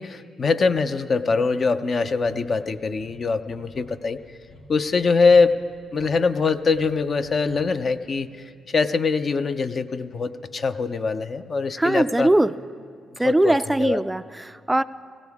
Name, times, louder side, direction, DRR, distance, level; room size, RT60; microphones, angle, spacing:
voice 1, 0.0-4.2 4.7-5.6 5.9-8.3 8.7-12.3 13.1-14.0, left 4 dB, 45° left, 10 dB, 0.5 m, -23 dB
sound 1, 2.2-7.9, left 1 dB, 75° left, 2.8 m, -49 dB
voice 2, 11.8-12.5 13.2-14.8, right 1 dB, 10° right, 13 dB, 0.3 m, -21 dB
19.0 x 16.0 x 3.5 m, 2.1 s
cardioid pair, 80°, 0 cm